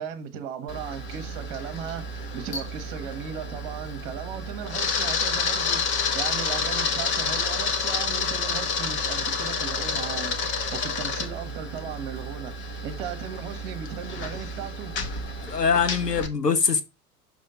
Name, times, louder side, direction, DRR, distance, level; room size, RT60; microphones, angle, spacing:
voice 1, 0.0-12.5 12.8-14.9, right 8 dB, 40° right, 1.3 m, -36 dB
Camera, 0.7-16.3, left 4 dB, 25° left, 1.0 m, -29 dB
voice 2, 15.5-16.8, left 6 dB, 90° left, 0.9 m, -23 dB
6.4 x 3.3 x 5.4 m
figure-of-eight pair, 95°, 47 cm